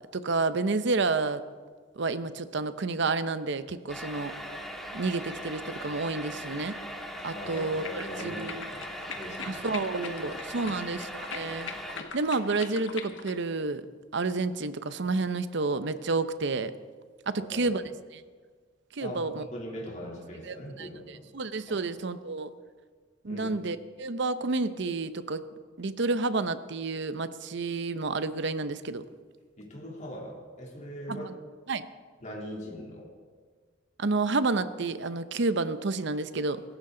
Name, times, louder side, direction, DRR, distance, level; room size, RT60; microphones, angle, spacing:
voice 1, 0.1-1.4 2.0-4.3 4.9-6.8 7.2-8.5 9.4-11.7 12.1-13.9 14.1-16.7 17.3-17.8 18.1-18.2 18.9-19.4 20.5-20.9 21.3-22.5 23.2-25.4 25.8-29.0 31.1-31.3 31.7-31.9 34.0-36.6, right 3 dB, 65° right, 12 dB, 0.8 m, -30 dB
sound 1, 3.9-12.0, equal, ahead, 2.0 m, -39 dB
sound 2, 7.2-13.4, left 5 dB, 70° left, 1.5 m, -42 dB
voice 2, 7.3-9.6 10.2-10.7 17.3-17.8 19.0-21.2 21.7-21.8 23.3-23.5 29.6-31.3 32.2-33.1, equal, 40° left, -3 dB, 3.3 m, -41 dB
24.0 x 14.0 x 3.9 m, 1.6 s
head